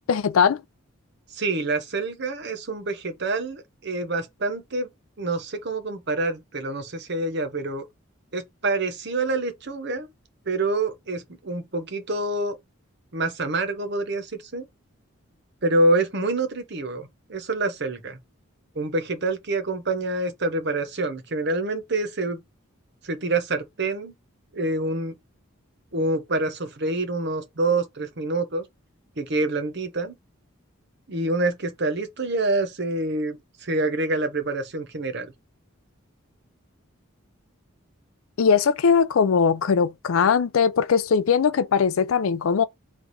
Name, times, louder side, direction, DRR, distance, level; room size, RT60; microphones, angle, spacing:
voice 1, 0.1-0.6 38.4-42.6, left 6 dB, 80° left, 0.4 m, -20 dB
voice 2, 1.3-4.9 5.2-7.8 8.3-10.1 10.5-12.6 13.1-14.6 15.6-18.2 18.8-22.4 23.0-24.1 24.5-25.1 25.9-28.6 29.2-30.1 31.1-35.3, right 2 dB, 55° right, 0.9 m, -26 dB
3.5 x 3.1 x 4.0 m
head